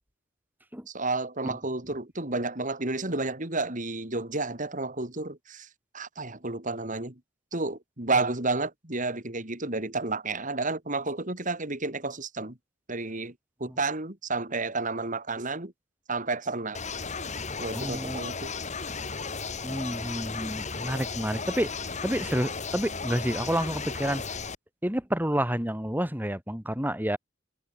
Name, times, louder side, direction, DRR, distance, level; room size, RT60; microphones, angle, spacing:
voice 1, 0.9-5.7 5.9-7.2 7.5-12.6 12.9-13.3 13.6-15.7 16.1-16.8 17.6-18.5, right 3 dB, 40° right, 3.6 m, -31 dB
sound 1, 16.7-24.6, left 4 dB, 35° left, 3.0 m, -35 dB
voice 2, 17.7-18.2 19.6-21.7 22.0-24.2 24.8-27.2, equal, 10° right, 6.8 m, -29 dB
head